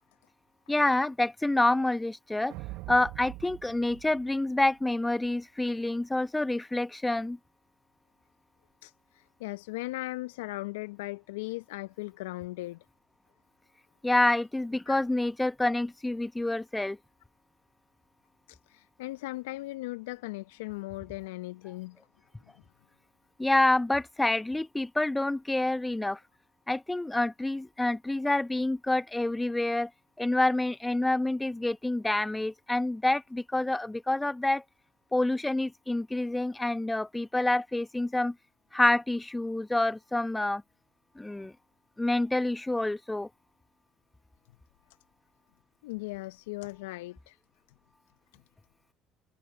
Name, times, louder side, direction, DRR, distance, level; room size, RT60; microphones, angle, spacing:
voice 1, 0.7-2.5 2.9-7.4 14.0-17.0 23.4-26.2 26.7-29.9 30.2-34.6 35.1-38.4 38.7-40.6 41.1-41.5 42.0-43.3, left 2 dB, 10° left, 1.1 m, -27 dB
sound 1, 2.5-5.0, right 20 dB, 70° right, 1.6 m, -43 dB
voice 2, 8.8-12.8 14.9-15.0 18.5-22.0 45.8-47.4 48.3-48.4, left 20 dB, 80° left, 0.9 m, -38 dB
hypercardioid pair, 60°, 0 cm